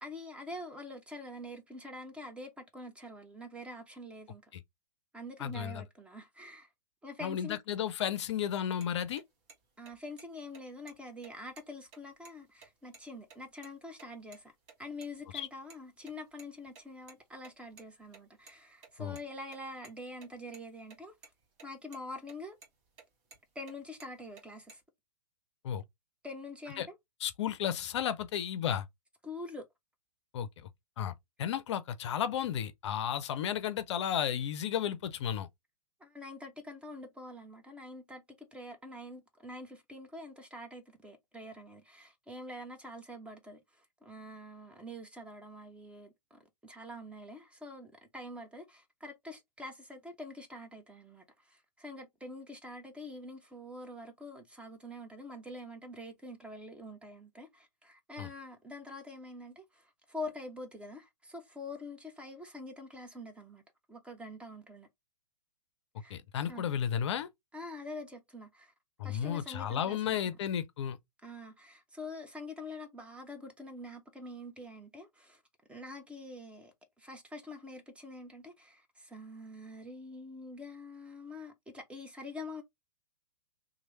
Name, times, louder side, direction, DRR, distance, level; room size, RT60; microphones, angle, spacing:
voice 1, 0.0-4.5 5.1-6.7 7.0-7.6 9.8-14.5 14.8-21.2 21.6-22.6 23.6-24.8 26.2-27.0 29.2-29.7 36.0-63.6 63.9-64.9 66.0-66.2 66.5-66.7 67.5-68.7 69.0-70.4 71.2-75.4 75.7-82.6, left 1 dB, 5° right, 0.5 m, -45 dB
voice 2, 5.4-5.8 7.2-9.2 15.3-15.5 19.0-19.2 25.6-25.8 26.8-26.9 27.2-28.9 30.3-30.5 31.0-31.1 31.4-35.5 58.2-58.3 66.1-67.3 69.0-71.0, left 9 dB, 45° left, 0.5 m, -33 dB
sound 1, 8.8-8.9 9.2-9.3 9.5-9.6 9.9-10.2 10.5-10.6 10.9-11.0 11.2-12.3 12.6-12.7 12.9-13.0 13.3-13.7 14.0-14.4 14.7-15.8 16.0-18.5 18.8-20.6 20.9-21.0 21.2-21.7 21.9-22.3 22.6-23.7 24.0-24.7, right 4 dB, 30° right, 1.4 m, -55 dB
3.0 x 2.5 x 2.9 m
figure-of-eight pair, 110°, 20 cm